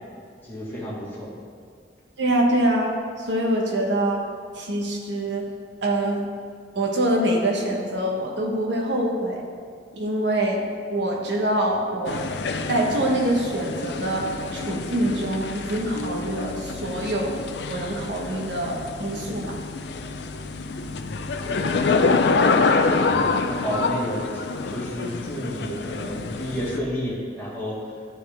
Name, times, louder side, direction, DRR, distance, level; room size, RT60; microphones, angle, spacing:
voice 1, 0.4-1.3 21.0-22.1 23.1-24.4 24.7-27.8, equal, 10° left, -6 dB, 1.7 m, -31 dB
voice 2, 2.2-4.2 4.5-5.5 5.8-6.3 6.7-9.4 9.9-10.6 10.9-12.2 12.7-17.4 17.7-19.6, right 1 dB, 80° right, 0 dB, 1.2 m, -25 dB
sound 1, 12.1-26.8, left 4 dB, 65° left, 0.4 m, -26 dB
12.0 x 4.6 x 3.5 m, 2.1 s
head